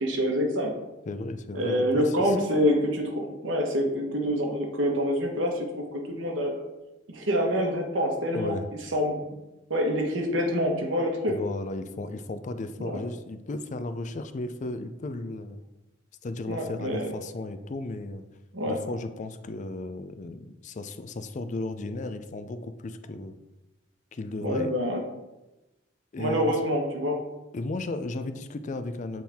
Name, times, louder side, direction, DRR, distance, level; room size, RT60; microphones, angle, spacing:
voice 1, 0.0-0.7 1.5-6.6 7.1-8.5 8.9-9.2 9.7-11.4 12.8-13.0 16.5-17.1 18.5-18.8 24.4-25.0 26.2-27.2, equal, 80° right, 1 dB, 1.3 m, -26 dB
voice 2, 1.1-2.4 8.3-8.7 11.3-15.6 16.2-18.2 18.7-23.4 24.1-24.7 26.1-26.6 27.5-29.2, left 2 dB, 40° left, 10 dB, 0.4 m, -34 dB
7.5 x 4.3 x 3.5 m, 1.0 s
head